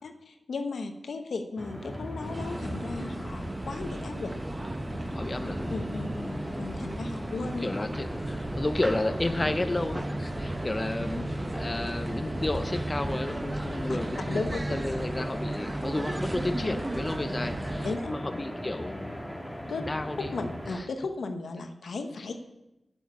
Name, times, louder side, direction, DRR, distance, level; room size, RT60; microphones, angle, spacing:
voice 1, 0.0-4.3 5.7-6.1 6.6-7.7 13.9-14.0 14.3-14.6 17.8-18.1 19.7-19.9 20.2-22.3, left 3 dB, 80° left, 6 dB, 0.9 m, -35 dB
sound 1, 1.6-20.8, equal, ahead, 2.7 m, -38 dB
sound 2, 2.2-18.0, right 1 dB, 30° right, 0.9 m, -35 dB
voice 2, 5.1-6.5 6.8-19.2 19.8-20.3 20.7-20.9, left 2 dB, 35° left, 10 dB, 0.7 m, -33 dB
8.2 x 7.3 x 8.2 m, 0.97 s
cardioid pair, 45°, 0 cm